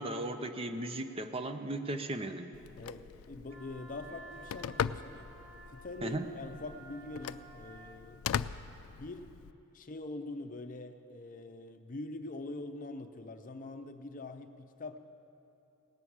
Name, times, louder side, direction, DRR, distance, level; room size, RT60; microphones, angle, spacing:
voice 1, 0.0-2.5 6.0-6.3, right 1 dB, 25° right, 8 dB, 0.6 m, -36 dB
Telephone, 2.5-9.5, left 8 dB, 80° left, 0.3 m, -40 dB
voice 2, 2.7-5.3 5.7-8.2 9.0-9.4 9.7-15.0, left 2 dB, 40° left, 8 dB, 0.6 m, -44 dB
Wind instrument woodwind instrument, 3.5-8.0, right 3 dB, 45° right, 1.6 m, -53 dB
18.0 x 6.3 x 8.6 m, 2.9 s
head